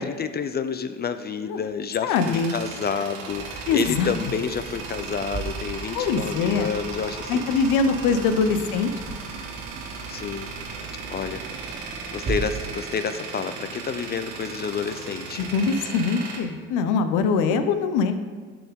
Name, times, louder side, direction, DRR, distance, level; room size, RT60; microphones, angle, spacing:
voice 1, 0.0-7.4 8.1-8.3 10.1-10.5 11.1-11.4 11.7-15.5, left 6 dB, 30° left, 11 dB, 0.5 m, -29 dB
Tools, 1.6-17.4, right 4 dB, 75° right, 1.4 m, -37 dB
voice 2, 2.0-2.5 3.7-4.1 5.9-6.7 7.3-8.9 15.4-18.1, left 5 dB, 70° left, 9 dB, 0.8 m, -23 dB
sound 1, 3.3-12.6, right 4 dB, 35° right, 1.8 m, -38 dB
12.0 x 6.0 x 3.7 m, 1.5 s
hypercardioid pair, 70°, 32 cm